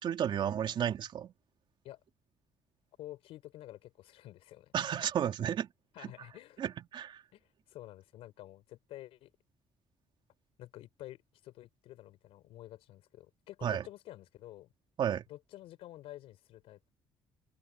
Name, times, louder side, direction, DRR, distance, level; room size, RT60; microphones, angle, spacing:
voice 1, 0.0-1.3 4.7-5.7 6.0-6.1 6.6-7.2 13.6-13.8 15.0-15.2, right 9 dB, 55° right, 3.2 m, -32 dB
voice 2, 3.0-4.7 5.9-6.6 7.3-9.3 10.6-14.7 15.3-16.9, left 14 dB, 85° left, 4.3 m, -50 dB
open air
cardioid pair, 115°, 10 cm